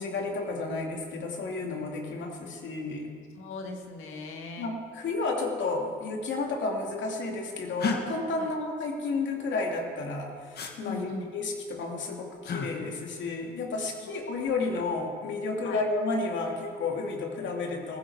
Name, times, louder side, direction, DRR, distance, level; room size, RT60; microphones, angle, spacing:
voice 1, 0.0-3.1 4.6-18.0, left 3 dB, 70° left, 1 dB, 2.6 m, -32 dB
voice 2, 3.4-4.7 8.4-8.5 10.8-11.3 14.0-14.1 15.6-15.8, left 3 dB, 90° left, 3 dB, 1.8 m, -39 dB
sound 1, 7.8-8.0 10.5-10.7 12.4-12.7 14.5-14.9, left 5 dB, 55° left, 1.8 m, -31 dB
15.5 x 15.5 x 4.9 m, 2.1 s
cardioid pair, 90°, 20 cm